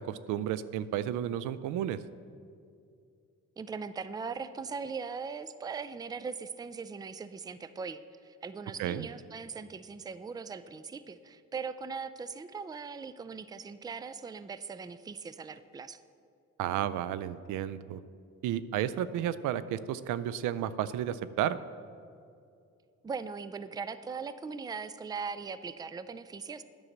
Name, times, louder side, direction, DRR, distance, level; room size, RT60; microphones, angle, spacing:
voice 1, 0.0-2.0 8.8-9.1 16.6-18.0 18.4-21.6, right 11 dB, 85° right, 15 dB, 0.4 m, -32 dB
voice 2, 3.6-16.0 23.0-26.6, right 5 dB, 15° right, 14 dB, 0.3 m, -40 dB
9.8 x 5.4 x 7.2 m, 2.4 s
cardioid pair, 90°, 30 cm